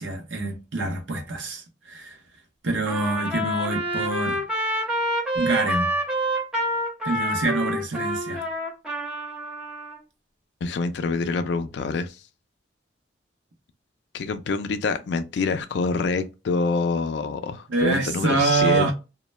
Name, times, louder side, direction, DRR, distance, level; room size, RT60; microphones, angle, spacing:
voice 1, 0.0-2.2 2.6-4.4 5.3-5.9 7.0-8.5 17.7-18.9, right 3 dB, 80° right, 0.7 m, -25 dB
Trumpet, 2.9-10.0, equal, 5° right, 0.6 m, -27 dB
voice 2, 10.6-12.2 14.1-18.9, left 4 dB, 65° left, 0.3 m, -26 dB
2.1 x 2.0 x 3.0 m
head